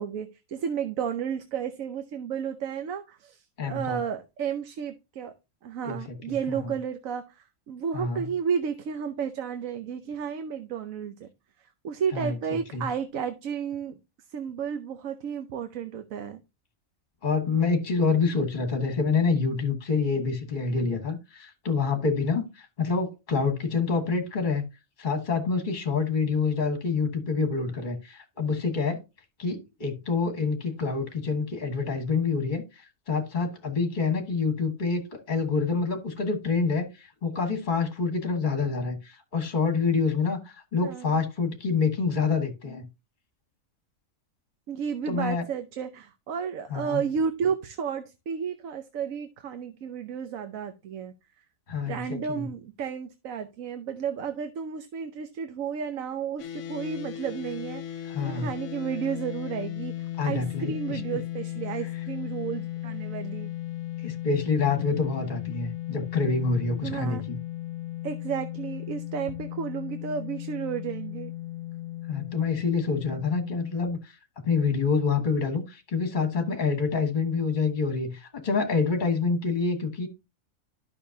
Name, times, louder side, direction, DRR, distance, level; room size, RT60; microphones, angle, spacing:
voice 1, 0.0-5.3 5.6-11.3 11.6-13.9 14.3-16.4 40.8-41.1 44.7-51.1 51.9-63.5 66.8-67.2 68.0-71.3, right 7 dB, 80° right, 1.2 m, -32 dB
voice 2, 3.6-4.0 5.8-6.7 7.9-8.2 12.1-12.3 12.7-12.9 17.2-24.7 25.0-29.0 29.4-42.9 45.1-45.4 46.7-47.0 51.7-52.5 58.1-58.5 60.2-61.0 64.0-67.4 72.1-74.2 74.4-80.1, left 4 dB, 35° left, 1.5 m, -27 dB
sound 1, 56.4-73.9, left 14 dB, 70° left, 1.0 m, -36 dB
12.0 x 5.7 x 2.7 m
omnidirectional pair, 1.4 m